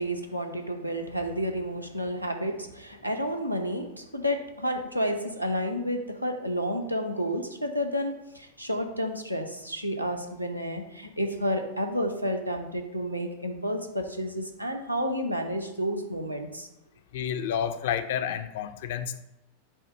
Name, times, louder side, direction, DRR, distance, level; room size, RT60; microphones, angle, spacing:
voice 1, 0.0-16.7, equal, 90° right, 3 dB, 0.7 m, -30 dB
voice 2, 17.1-19.2, left 8 dB, 55° left, 10 dB, 0.4 m, -30 dB
7.2 x 2.6 x 5.2 m, 0.88 s
figure-of-eight pair, 90°, 0 cm